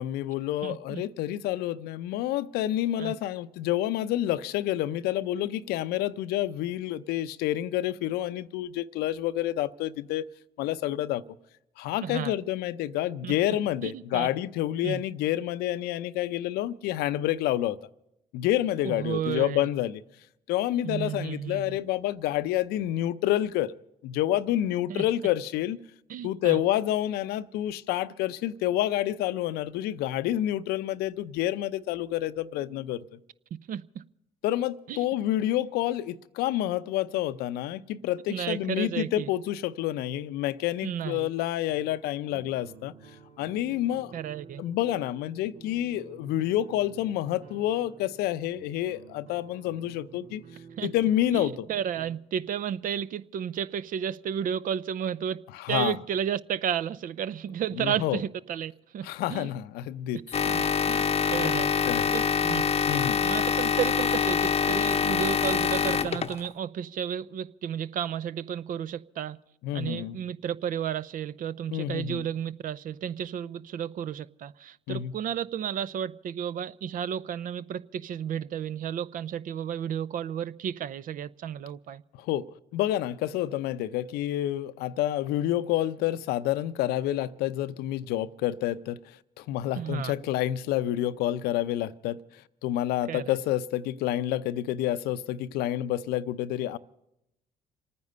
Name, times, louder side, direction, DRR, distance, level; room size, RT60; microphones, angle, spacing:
voice 1, 0.0-10.3 10.6-11.2 11.8-17.8 18.3-20.0 20.5-23.7 24.0-25.8 26.2-33.0 34.4-42.9 43.4-44.1 44.6-50.4 50.8-51.7 55.5-56.0 57.8-58.2 59.0-60.2 61.8-62.2 62.9-63.2 69.6-70.2 71.7-72.2 74.9-75.1 82.2-82.5 82.7-89.0 89.4-96.8, left 13 dB, 75° left, 0.6 m, -28 dB
voice 2, 0.6-1.0 3.0-3.1 12.0-12.3 13.2-13.6 13.8-14.3 14.8-15.0 18.8-19.7 20.8-21.8 24.9-25.0 26.1-26.6 33.7-34.0 34.9-35.0 38.3-39.3 40.8-41.3 44.1-44.6 50.8-50.9 51.3-55.4 55.7-59.5 60.3-61.0 61.3-61.7 62.1-62.6 63.2-69.4 69.7-82.0 89.7-90.1 93.1-93.4, right 9 dB, 55° right, 0.6 m, -32 dB
sound 1, 41.7-52.1, right 5 dB, 90° right, 1.6 m, -51 dB
sound 2, 60.3-66.5, left 7 dB, 40° left, 0.7 m, -25 dB
27.0 x 9.6 x 5.5 m
supercardioid pair, 65°, 17 cm